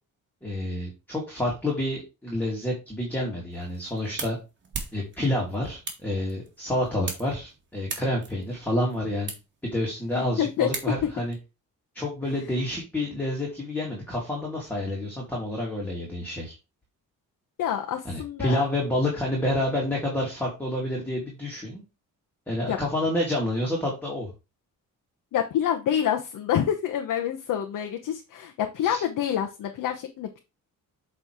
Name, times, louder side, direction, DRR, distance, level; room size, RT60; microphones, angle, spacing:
voice 1, 0.4-4.4 4.9-9.3 9.6-11.3 11.9-16.5 18.0-21.8 22.5-24.3 28.8-29.0, left 1 dB, 5° left, -3 dB, 2.3 m, -28 dB
sound 1, 3.5-11.3, right 4 dB, 35° right, 2.0 m, -40 dB
voice 2, 10.1-10.9 17.6-18.6 22.6-22.8 25.3-30.4, left 9 dB, 70° left, 4 dB, 1.0 m, -27 dB
7.9 x 3.3 x 4.6 m, 0.28 s
cardioid pair, 125°, 34 cm